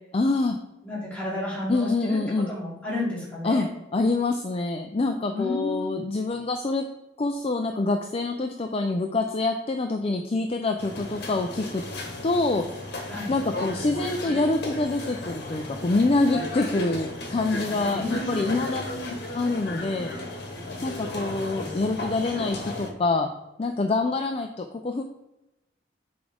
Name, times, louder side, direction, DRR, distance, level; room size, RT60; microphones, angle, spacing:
voice 1, 0.1-0.6 1.7-2.5 3.4-6.8 7.2-11.8 12.2-12.7 13.3-18.9 19.3-20.2 20.8-23.3 23.6-25.0, left 3 dB, 30° left, 5 dB, 0.4 m, -26 dB
voice 2, 0.8-2.2 2.5-3.7 5.3-5.9 13.1-13.3 17.9-19.1 21.4-21.6, left 1 dB, 10° left, -7 dB, 2.8 m, -32 dB
sound 1, 10.8-22.9, left 1 dB, 60° left, 1.5 m, -35 dB
8.1 x 4.8 x 3.7 m, 0.93 s
head